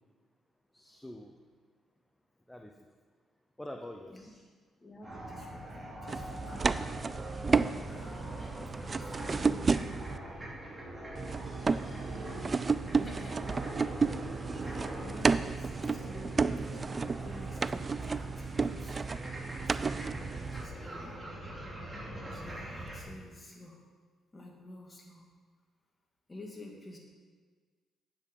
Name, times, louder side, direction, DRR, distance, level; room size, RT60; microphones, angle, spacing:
voice 1, 0.7-1.3 2.5-2.7 3.6-4.4 8.2-8.4 10.4-10.5 11.5-11.9, left 1 dB, 5° left, 3 dB, 0.7 m, -46 dB
voice 2, 4.8-7.0 7.9-10.1 11.6-12.4 12.8-19.0 19.6-21.2 22.3-23.8 24.3-25.3 26.3-27.0, left 1 dB, 25° left, 0 dB, 2.1 m, -51 dB
sound 1, 5.0-23.0, right 1 dB, 15° right, 2.8 m, -43 dB
sound 2, 6.1-10.2 11.2-20.7, right 4 dB, 35° right, 0.3 m, -32 dB
8.5 x 7.3 x 5.3 m, 1.5 s
cardioid pair, 90°, 0 cm